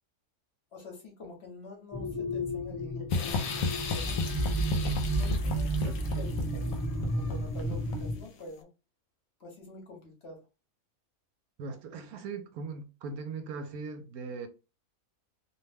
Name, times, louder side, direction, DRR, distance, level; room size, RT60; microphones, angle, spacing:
voice 1, 0.7-4.3 5.2-6.6 7.0-8.7 9.4-10.4, left 2 dB, 50° left, 1.0 m, -47 dB
sound 1, 1.9-8.2, right 1 dB, 10° left, 0.8 m, -32 dB
sound 2, 3.1-8.3, left 4 dB, 75° left, 1.0 m, -34 dB
voice 2, 11.6-14.5, right 4 dB, 80° right, 1.0 m, -39 dB
2.6 x 2.1 x 3.2 m
omnidirectional pair, 1.5 m